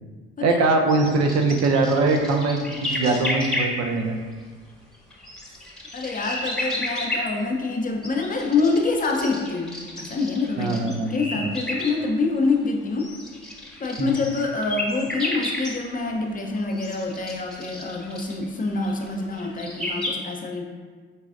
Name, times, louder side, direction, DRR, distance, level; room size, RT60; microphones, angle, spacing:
voice 1, 0.4-4.2 10.6-11.5 14.0-14.1, right 3 dB, 55° right, 3 dB, 0.6 m, -22 dB
sound 1, 0.9-4.2 4.9-7.3 8.0-12.0 12.4-12.5 13.0-15.7 16.1-20.1, left 1 dB, ahead, 1.0 m, -32 dB
voice 2, 5.9-13.1 13.8-20.7, left 3 dB, 25° left, 1 dB, 0.6 m, -26 dB
4.1 x 4.0 x 2.4 m, 1.5 s
hypercardioid pair, 65°, 32 cm